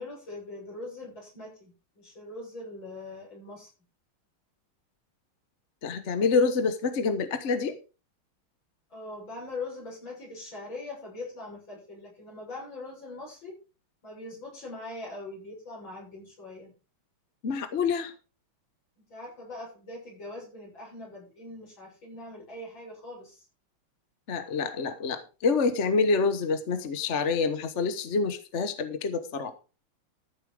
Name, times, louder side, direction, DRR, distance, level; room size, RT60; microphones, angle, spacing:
voice 1, 0.0-3.7 8.9-13.5 14.0-16.7 19.0-23.5, left 2 dB, 65° left, -3 dB, 7.9 m, -42 dB
voice 2, 5.8-7.7 17.4-18.1 24.3-29.5, left 4 dB, 40° left, 10 dB, 1.2 m, -27 dB
14.0 x 7.3 x 4.9 m, 0.33 s
omnidirectional pair, 2.2 m